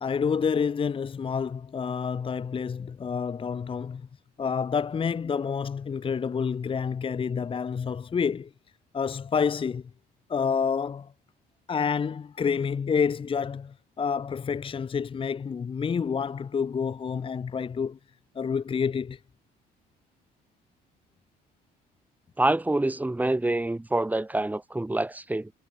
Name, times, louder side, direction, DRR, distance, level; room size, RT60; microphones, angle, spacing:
voice 1, 0.0-4.0 4.4-8.5 8.9-9.8 10.3-11.1 11.7-18.0 18.3-19.2, left 6 dB, 30° left, 1.2 m, -28 dB
voice 2, 22.4-25.5, right 2 dB, 10° right, 2.8 m, -26 dB
cardioid pair, 110°, 17 cm